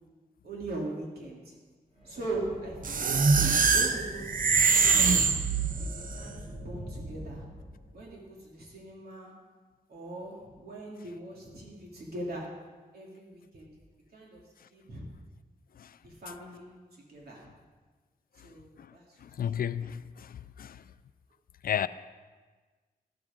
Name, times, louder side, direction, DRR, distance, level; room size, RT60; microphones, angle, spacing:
voice 1, 0.4-1.5 2.0-5.2 5.8-7.4 7.9-9.3 9.9-12.5 12.9-13.7 14.1-14.4 14.7-15.0 16.0-16.7 17.1-17.5 18.4-19.2 19.5-19.6, right 2 dB, 80° right, 2.8 m, -40 dB
sound 1, 2.0-8.1, equal, 40° right, 2.3 m, -42 dB
sound 2, 2.8-6.1, right 5 dB, 60° right, 0.7 m, -24 dB
voice 2, 19.2-20.8 21.6-21.9, left 9 dB, 70° left, 0.4 m, -33 dB
12.5 x 12.5 x 3.7 m
wide cardioid pair, 170°, 16 cm